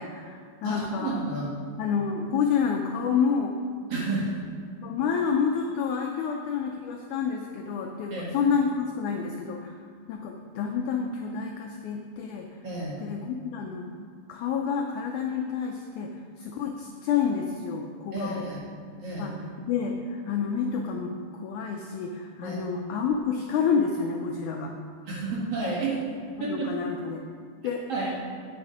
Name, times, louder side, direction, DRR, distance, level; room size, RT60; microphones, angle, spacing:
voice 1, 0.0-1.2 1.8-3.5 4.8-9.8 10.1-12.6 13.0-13.9 14.3-18.5 19.2-24.7 26.4-27.2 27.6-27.9, left 6 dB, 90° left, 2 dB, 1.7 m, -29 dB
voice 2, 0.6-1.5 3.9-4.4 8.1-8.3 12.6-13.0 18.1-18.6 19.0-19.3 22.4-22.6 25.1-26.0 26.4-26.9 27.9-28.1, right 3 dB, 50° right, -5 dB, 2.3 m, -30 dB
8.9 x 8.7 x 5.1 m, 2.2 s
omnidirectional pair, 4.3 m